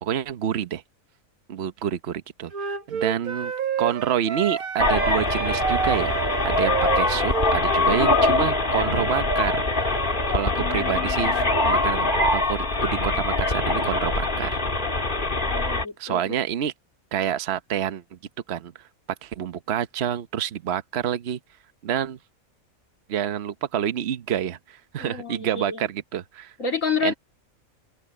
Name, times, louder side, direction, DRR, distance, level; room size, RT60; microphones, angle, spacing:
voice 1, 0.0-0.8 1.5-3.5 3.8-9.6 10.3-12.1 12.3-14.6 16.0-16.7 17.1-18.2 18.5-18.7 19.2-21.4 21.8-22.2 23.1-26.5 27.0-27.1, right 9 dB, 50° right, 1.1 m, -28 dB
Wind instrument woodwind instrument, 2.5-8.0, right 7 dB, 80° right, 1.7 m, -29 dB
sound 1, 4.8-15.9, left 2 dB, 35° left, 2.4 m, -23 dB
voice 2, 10.5-11.5 15.4-16.3 25.0-25.9 26.6-27.1, left 5 dB, 65° left, 3.3 m, -30 dB
omnidirectional pair, 1.5 m